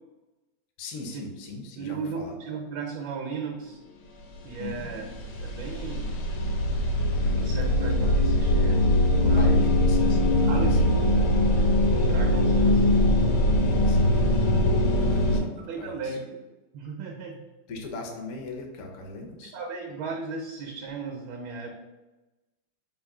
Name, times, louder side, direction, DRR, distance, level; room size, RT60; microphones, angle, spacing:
voice 1, 0.8-2.4 4.6-4.9 9.3-10.8 13.7-14.4 15.0-16.2 17.7-19.5, left 3 dB, 70° left, 2 dB, 0.7 m, -39 dB
voice 2, 1.8-3.8 4.4-5.1 5.4-6.3 7.3-9.6 10.5-13.0 15.3-16.4 16.7-17.4 19.4-21.7, right 4 dB, 70° right, 2 dB, 1.2 m, -36 dB
sound 1, 4.4-4.5 4.7-15.4, left 1 dB, 85° left, 1.7 m, -22 dB
3.7 x 2.6 x 4.7 m, 1.1 s
omnidirectional pair, 2.3 m